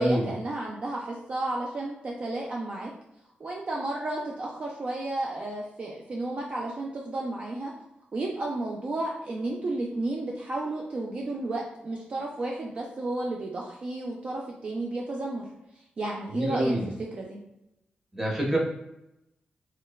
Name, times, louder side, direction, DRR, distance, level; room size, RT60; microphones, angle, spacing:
voice 1, 0.0-2.9 3.4-7.7 8.1-15.4 16.0-17.4, right 2 dB, 40° right, -2 dB, 0.3 m, -32 dB
voice 2, 16.3-16.8 18.1-18.6, right 1 dB, 15° right, -4 dB, 0.7 m, -25 dB
3.0 x 2.1 x 2.2 m, 0.87 s
wide cardioid pair, 120°, 3 cm